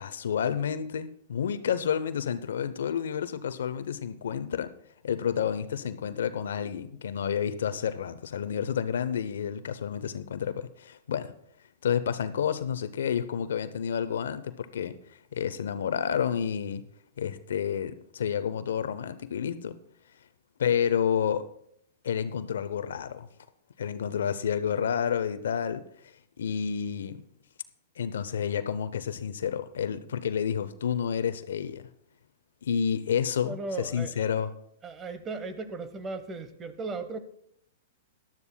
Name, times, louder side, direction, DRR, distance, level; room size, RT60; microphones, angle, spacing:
voice 1, 0.0-4.7 5.0-11.3 11.8-15.0 15.3-16.8 17.2-19.8 20.6-21.5 22.0-23.3 23.8-25.8 26.4-27.2 28.0-31.8 32.6-34.5, left 8 dB, 75° left, 0.7 m, -30 dB
voice 2, 33.4-34.2 34.8-37.2, right 3 dB, 25° right, 1.0 m, -36 dB
17.5 x 12.0 x 2.2 m
hypercardioid pair, 120°, 0 cm